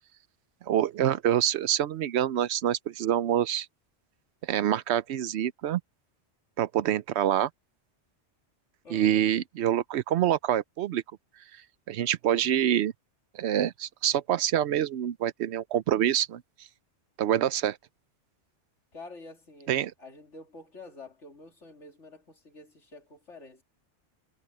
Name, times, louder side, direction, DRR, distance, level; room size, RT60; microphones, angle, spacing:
voice 1, 0.7-3.7 4.4-5.8 6.6-7.5 8.9-11.0 11.9-12.9 13.3-16.4 17.2-17.8 19.7-19.9, right 11 dB, 70° right, 0.8 m, -26 dB
voice 2, 8.8-9.3 18.9-19.7 20.0-23.6, left 3 dB, 80° left, 3.2 m, -48 dB
omnidirectional pair, 1.2 m